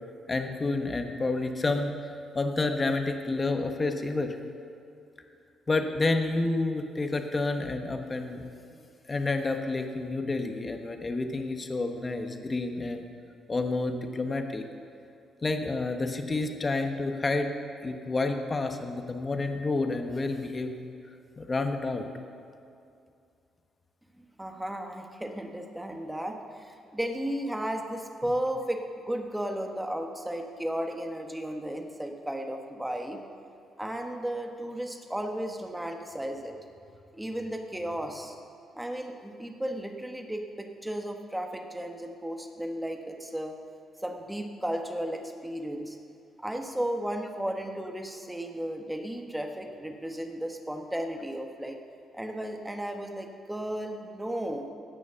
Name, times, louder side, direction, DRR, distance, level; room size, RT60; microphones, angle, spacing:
voice 1, 0.3-1.9 2.3-4.4 5.7-8.4 9.1-13.0 13.5-14.6 15.4-17.5 17.8-20.7 21.4-22.1, left 3 dB, 30° left, 5 dB, 1.2 m, -29 dB
voice 2, 24.2-28.8 29.0-33.2 33.8-36.6 37.1-38.3 38.7-43.6 44.0-46.0 46.4-51.8 52.1-54.7, right 1 dB, 5° right, 4 dB, 1.3 m, -34 dB
16.0 x 6.2 x 6.9 m, 2.5 s
cardioid pair, 90°, 0 cm